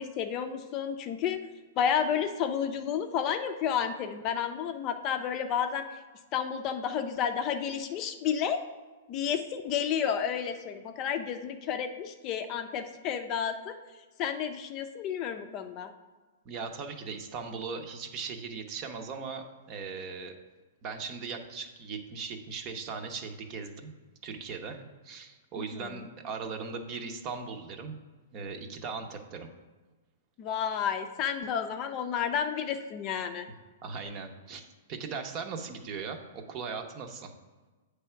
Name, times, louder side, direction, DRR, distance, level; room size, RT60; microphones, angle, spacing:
voice 1, 0.0-1.4 1.8-5.8 6.3-8.6 9.1-13.7 14.2-15.9 25.6-26.0 30.4-33.5, left 8 dB, 30° left, 7 dB, 0.5 m, -31 dB
voice 2, 16.4-20.3 20.8-23.9 24.2-28.0 28.3-29.5 33.8-34.6 34.9-37.3, right 5 dB, 35° right, 6 dB, 0.8 m, -39 dB
8.1 x 3.3 x 5.7 m, 1.3 s
hypercardioid pair, 150°, 0 cm